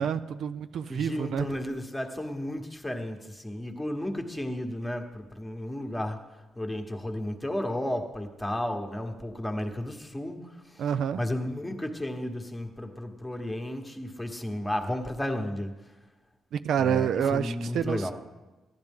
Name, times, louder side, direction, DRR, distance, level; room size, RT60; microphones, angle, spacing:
voice 1, 0.0-1.5 10.8-11.2 16.5-18.1, right 8 dB, 70° right, 12 dB, 0.4 m, -28 dB
voice 2, 0.9-6.2 6.6-10.8 11.1-15.7 16.8-18.1, left 1 dB, 5° left, 3 dB, 1.2 m, -33 dB
14.5 x 11.0 x 3.6 m, 1.2 s
cardioid pair, 90°, 0 cm